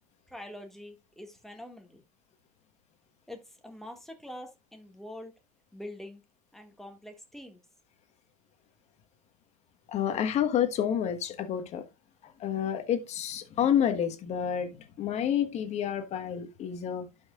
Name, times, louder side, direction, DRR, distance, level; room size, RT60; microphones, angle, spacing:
voice 1, 0.3-2.0 3.3-5.3 5.7-6.2 6.5-7.6, left 1 dB, ahead, 2.0 m, -45 dB
voice 2, 9.9-11.9 12.2-17.1, left 9 dB, 35° left, 1.4 m, -29 dB
12.0 x 5.7 x 2.5 m
hypercardioid pair, 100°, 19 cm